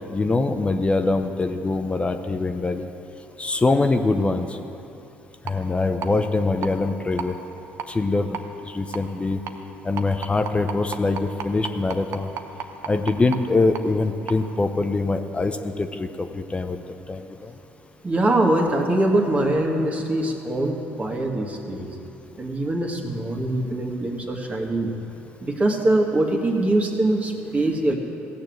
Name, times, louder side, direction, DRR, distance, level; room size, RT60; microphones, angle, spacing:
voice 1, 0.0-2.9 3.4-4.6 5.4-7.3 7.9-8.4 8.7-9.4 9.8-12.3 12.9-16.8 17.1-17.5, left 3 dB, 20° left, 7 dB, 0.8 m, -23 dB
sound 1, 5.5-5.6 6.0-6.1 6.6-6.7 7.2-7.3 7.8-7.9 8.3-8.4 8.9-9.0 9.5-9.6 10.0-13.4 13.7-13.8 14.3-14.4, right 8 dB, 65° right, 0.9 m, -31 dB
voice 2, 18.0-21.9 22.4-24.9 25.4-28.0, right 1 dB, 30° right, 1 dB, 2.0 m, -23 dB
15.5 x 6.9 x 7.9 m, 2.9 s
supercardioid pair, 70°, 5 cm